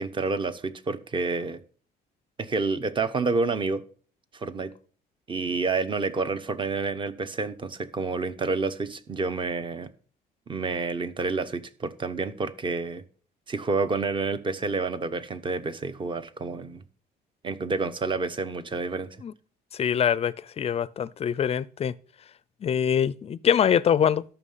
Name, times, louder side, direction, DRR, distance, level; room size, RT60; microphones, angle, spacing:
voice 1, 0.0-1.6 2.4-3.8 4.3-4.7 5.3-9.9 10.5-13.0 13.5-16.8 17.4-19.1, right 4 dB, 30° right, 1.0 m, -29 dB
voice 2, 19.7-21.9 22.6-24.2, left 8 dB, 35° left, 0.5 m, -24 dB
13.0 x 5.9 x 5.6 m
cardioid pair, 110°, 17 cm